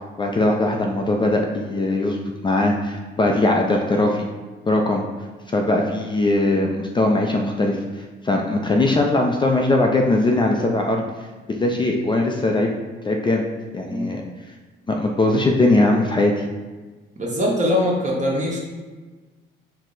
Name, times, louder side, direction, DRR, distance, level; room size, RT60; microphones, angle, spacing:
voice 1, 0.2-2.2 2.4-4.3 4.7-5.0 5.5-11.0 11.5-12.7 13.0-13.4 13.7-14.2 14.9-16.3, left 2 dB, 25° left, 1 dB, 0.4 m, -20 dB
voice 2, 17.2-18.6, left 1 dB, 40° right, -3 dB, 1.1 m, -22 dB
4.5 x 2.0 x 3.9 m, 1.3 s
cardioid pair, 90°, 20 cm